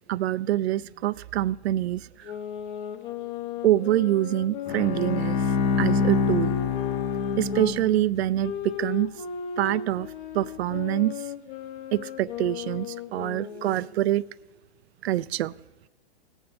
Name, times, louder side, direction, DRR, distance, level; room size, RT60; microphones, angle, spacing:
voice 1, 0.1-2.3 3.6-5.4 5.8-6.5 7.4-9.1 9.6-10.1 10.3-11.2 11.9-14.2 15.0-15.5, right 14 dB, 80° right, 20 dB, 0.5 m, -25 dB
sound 1, 2.2-7.7 8.4-14.0, left 8 dB, 55° left, 1.2 m, -36 dB
Bowed string instrument, 4.7-8.2, left 5 dB, 20° left, 0.5 m, -26 dB
18.5 x 7.2 x 5.1 m, 1.2 s
hypercardioid pair, 155°, 32 cm